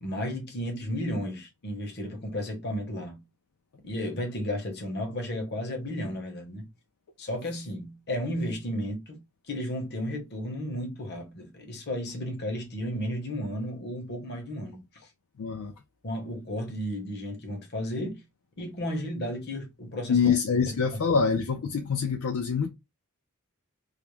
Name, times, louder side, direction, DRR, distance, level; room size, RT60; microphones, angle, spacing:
voice 1, 0.0-3.2 3.8-6.7 7.2-9.2 9.5-15.0 16.0-18.2 18.6-20.3, equal, 50° left, 0.8 m, -33 dB
voice 2, 15.4-15.7 20.1-22.7, left 6 dB, 70° left, 0.4 m, -25 dB
2.4 x 2.0 x 3.0 m
head